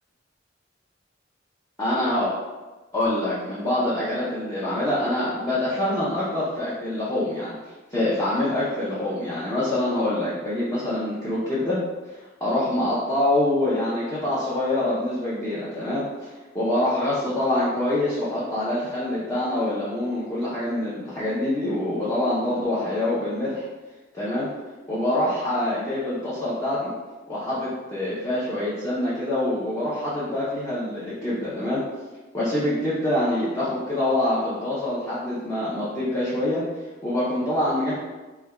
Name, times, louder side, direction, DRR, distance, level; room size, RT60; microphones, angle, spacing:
voice 1, 1.8-2.3 2.9-7.6 7.9-11.8 12.4-16.3 16.5-23.6 24.1-24.5 24.9-26.9 27.3-31.8 32.3-36.6 37.0-37.9, left 1 dB, 15° left, -11 dB, 0.7 m, -25 dB
3.3 x 2.3 x 3.4 m, 1.2 s
head